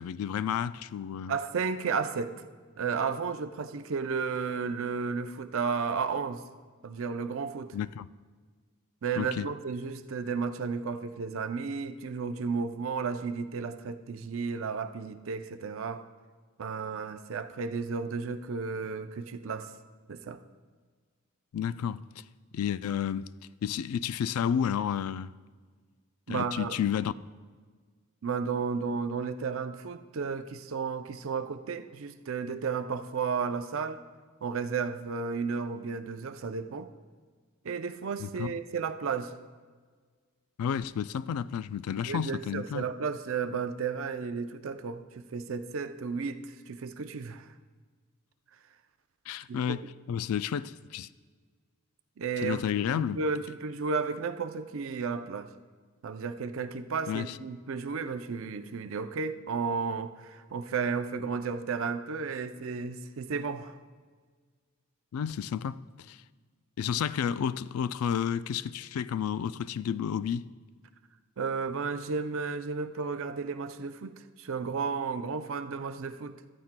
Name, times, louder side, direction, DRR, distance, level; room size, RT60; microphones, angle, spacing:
voice 1, 0.0-1.3 7.7-8.1 9.2-9.5 21.5-22.2 22.5-23.3 23.6-25.3 26.3-27.1 38.2-38.5 40.6-42.8 49.3-49.8 50.1-51.1 52.4-53.2 57.1-57.3 65.1-65.8 66.1-66.2 66.8-70.4, left 8 dB, 80° left, 0.3 m, -31 dB
voice 2, 1.3-2.3 2.8-6.4 6.8-7.7 9.0-16.0 16.6-19.7 20.1-20.4 26.3-26.7 28.2-34.0 34.4-36.9 37.6-39.3 42.1-47.5 49.5-49.8 52.2-52.6 53.0-55.5 56.0-63.8 71.4-76.4, right 5 dB, 65° right, 0.5 m, -33 dB
15.0 x 13.5 x 2.2 m
head